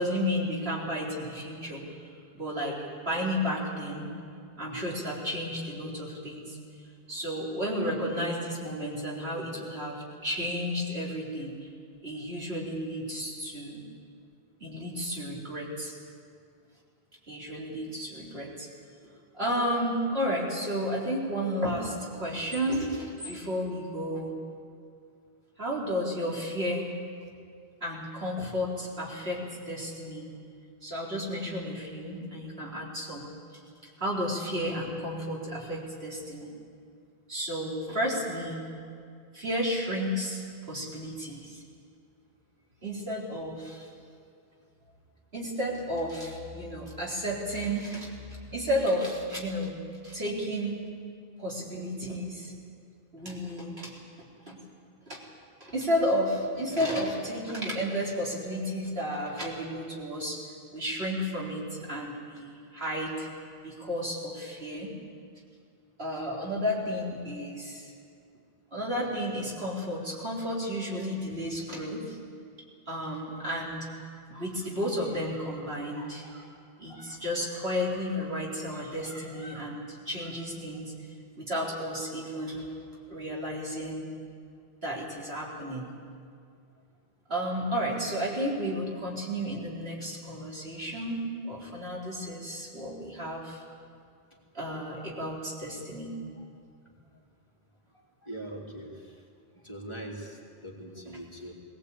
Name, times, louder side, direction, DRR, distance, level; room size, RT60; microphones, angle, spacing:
voice 1, 0.0-1.8 2.3-2.8 3.1-4.1 4.6-6.6 7.1-11.6 12.0-13.8 14.6-15.9 17.3-18.7 19.0-24.3 25.6-26.9 27.8-30.3 30.8-33.3 34.0-36.5 37.3-38.6 39.3-40.4 40.7-41.6 42.8-43.9 45.3-49.8 50.0-50.9 51.4-52.5 53.1-53.9 54.5-54.6 55.1-55.2 55.6-60.4 60.7-63.3 63.6-64.9 66.0-67.9 68.7-72.2 72.9-73.9 74.3-76.5 76.8-80.9 81.4-82.7 83.1-84.1 84.8-85.9 87.3-93.6 94.5-96.1 101.1-101.2, equal, 70° right, -4 dB, 4.3 m, -32 dB
voice 2, 98.2-99.2 99.6-101.5, right 1 dB, 25° left, -3 dB, 3.3 m, -41 dB
21.0 x 18.5 x 8.5 m, 2.3 s
omnidirectional pair, 1.1 m